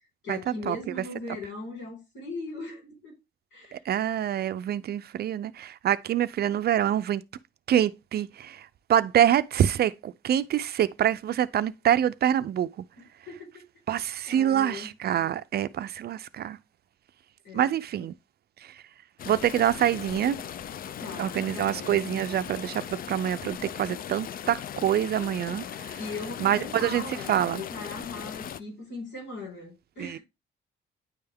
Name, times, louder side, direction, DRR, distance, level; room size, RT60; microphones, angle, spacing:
voice 1, 0.2-3.2 3.5-3.8 13.0-13.7 14.3-14.9 17.4-17.7 21.0-22.0 26.0-30.2, left 3 dB, 75° left, 4.5 m, -39 dB
voice 2, 3.7-7.2 7.7-12.7 13.9-16.6 17.5-18.1 18.6-18.7 19.3-20.4 21.2-26.0 26.4-27.6 30.0-30.2, right 10 dB, 55° right, 0.4 m, -26 dB
sound 1, 19.2-28.6, left 9 dB, 45° left, 0.4 m, -38 dB
9.6 x 3.4 x 3.4 m
cardioid pair, 90°, 20 cm